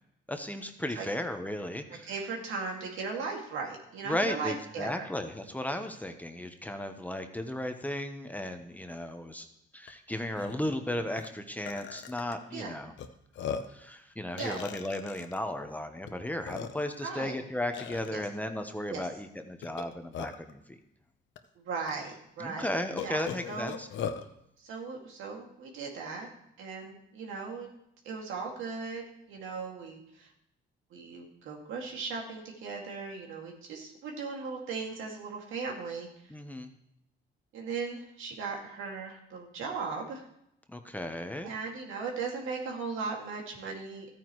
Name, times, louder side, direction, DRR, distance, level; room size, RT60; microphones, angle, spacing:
voice 1, 0.3-2.1 4.0-9.5 9.7-12.9 13.7-20.8 22.4-23.9 36.3-36.7 40.7-41.5, left 1 dB, 10° left, 6 dB, 1.0 m, -35 dB
voice 2, 2.0-5.1 12.5-12.8 14.4-14.6 17.0-17.4 18.1-18.3 18.9-19.1 21.6-22.7 23.0-23.8 24.6-26.3 26.6-27.7 28.0-29.0 29.3-30.3 30.9-36.1 37.5-40.2 41.4-44.1, right 4 dB, 85° right, 0 dB, 2.3 m, -37 dB
Burping eructation, 9.9-10.0 10.3-10.5 11.2-11.3 11.7-12.3 13.0-13.1 13.4-13.8 14.4-15.4 16.1-16.2 16.5-17.0 17.7-18.1 19.6-20.5 21.4-21.5 21.9-22.0 23.0-24.2, left 7 dB, 70° left, 0.8 m, -38 dB
13.5 x 9.3 x 3.1 m, 0.77 s
cardioid pair, 90°, 20 cm